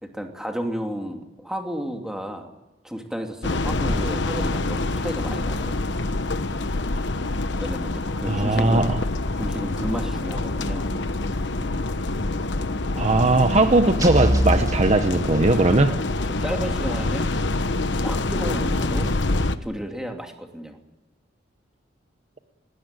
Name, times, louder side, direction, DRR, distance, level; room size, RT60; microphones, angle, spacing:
voice 1, 0.0-2.5 2.8-5.8 7.6-8.9 9.4-10.9 16.4-17.3 18.0-19.1 19.6-20.8, equal, 5° right, 3 dB, 2.7 m, -32 dB
sound 1, 3.4-19.6, left 2 dB, 70° left, 1.1 m, -26 dB
voice 2, 8.3-9.0 13.0-16.0, right 2 dB, 35° right, 8 dB, 1.1 m, -19 dB
sound 2, 14.0-15.9, equal, 20° right, 1.8 m, -25 dB
20.0 x 19.5 x 9.0 m, 1.0 s
head